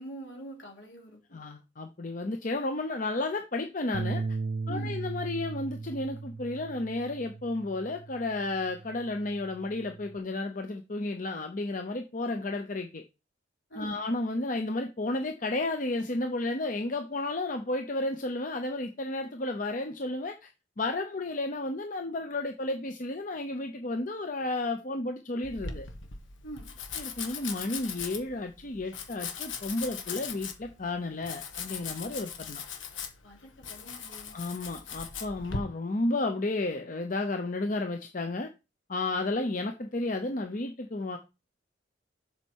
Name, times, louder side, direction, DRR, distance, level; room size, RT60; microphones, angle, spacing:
voice 1, 0.0-1.4 4.7-5.0 13.7-14.0 26.4-26.8 33.2-34.3, right 1 dB, 70° left, 3.5 m, -44 dB
voice 2, 1.3-4.2 4.7-13.0 13.8-20.5 20.8-25.9 27.0-32.6 34.3-38.5 38.9-41.2, left 2 dB, 45° left, 0.7 m, -32 dB
sound 1, 3.9-10.2, right 4 dB, 50° right, 0.4 m, -38 dB
Domestic sounds home sounds, 25.4-35.6, left 6 dB, 90° left, 1.4 m, -39 dB
7.5 x 5.6 x 4.5 m
head